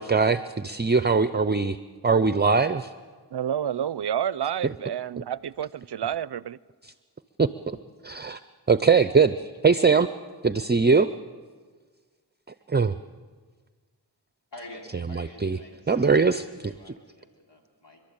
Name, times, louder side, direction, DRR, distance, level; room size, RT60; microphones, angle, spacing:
voice 1, 0.0-1.8 2.0-2.9 7.4-7.5 8.0-8.4 8.7-10.1 10.4-11.1 12.7-13.0 15.1-15.6 15.9-16.9, right 4 dB, 25° right, 13 dB, 0.6 m, -21 dB
voice 2, 3.3-6.6, right 9 dB, 75° right, 20 dB, 0.5 m, -29 dB
voice 3, 14.5-16.2 16.6-18.0, left 1 dB, 90° left, -1 dB, 3.3 m, -47 dB
29.0 x 12.0 x 8.8 m, 1.5 s
wide cardioid pair, 45°, 41 cm